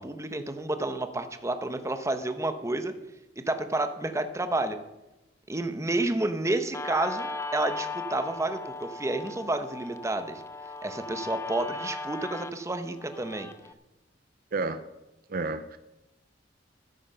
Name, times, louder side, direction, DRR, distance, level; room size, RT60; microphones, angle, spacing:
voice 1, 0.0-2.9 3.4-4.8 5.5-10.4 10.8-13.5, right 2 dB, 15° right, 9 dB, 0.9 m, -30 dB
Guitar, 6.7-13.7, left 3 dB, 15° left, 0.6 m, -38 dB
voice 2, 14.5-14.8 15.3-15.8, right 3 dB, 50° right, 11 dB, 0.6 m, -30 dB
13.0 x 10.0 x 5.7 m, 0.98 s
head